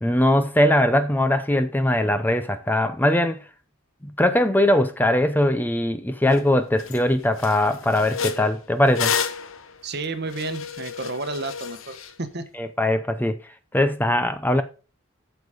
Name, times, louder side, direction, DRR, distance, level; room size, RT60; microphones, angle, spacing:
voice 1, 0.0-3.4 4.0-9.1 12.6-13.4 13.7-14.6, left 1 dB, 10° left, 0.6 m, -21 dB
sound 1, 6.3-6.4 6.8-7.0 7.4-12.1, left 7 dB, 75° left, 0.9 m, -30 dB
voice 2, 9.8-12.4, right 3 dB, 55° right, 1.1 m, -31 dB
7.9 x 7.0 x 4.9 m
head